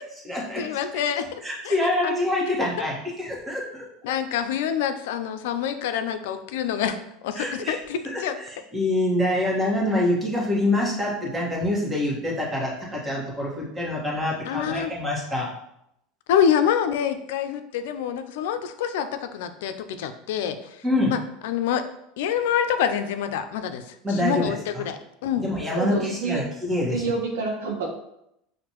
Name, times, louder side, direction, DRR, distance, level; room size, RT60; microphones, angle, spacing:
voice 1, 0.0-0.7 1.4-3.8 7.4-7.8 8.1-8.5 8.7-15.5 20.8-21.1 24.0-24.9 25.4-27.0, left 1 dB, 15° right, -3 dB, 1.4 m, -26 dB
voice 2, 0.6-1.8 2.0-2.1 4.0-7.0 7.2-8.4 14.5-14.9 16.3-20.8 21.1-21.8 22.2-25.5, left 8 dB, 80° left, 9 dB, 0.4 m, -26 dB
voice 3, 25.7-26.4 26.9-27.9, right 4 dB, 90° right, 1 dB, 1.0 m, -28 dB
5.9 x 2.6 x 2.9 m, 0.79 s
supercardioid pair, 115°, 0 cm